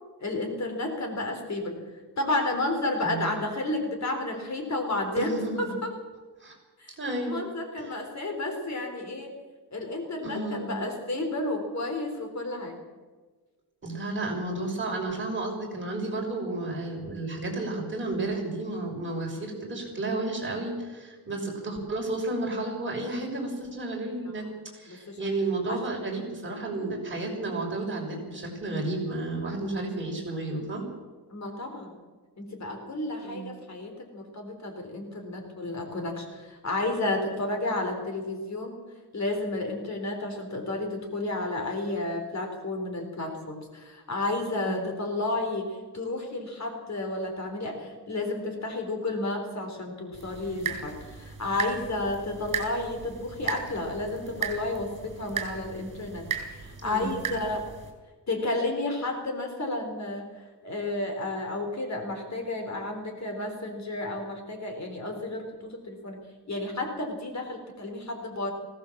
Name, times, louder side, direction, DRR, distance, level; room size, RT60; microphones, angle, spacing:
voice 1, 0.2-1.8 2.2-5.9 6.8-6.9 7.3-9.3 9.7-12.8 24.9-25.3 25.7-25.8 31.3-32.0 32.4-38.8 39.1-57.7 58.3-60.3 60.6-66.2 66.5-68.5, left 2 dB, 45° left, 4 dB, 3.9 m, -31 dB
voice 2, 3.0-3.3 5.2-5.8 6.4-6.5 7.0-7.5 7.8-8.0 10.2-10.8 13.8-24.4 24.7-30.8 33.2-33.5 44.5-44.9 56.8-57.2, right 2 dB, 30° right, -1 dB, 6.3 m, -32 dB
sound 1, 50.1-57.9, right 7 dB, 50° right, 5.2 m, -36 dB
20.0 x 17.5 x 7.4 m, 1.3 s
wide cardioid pair, 145°, 40 cm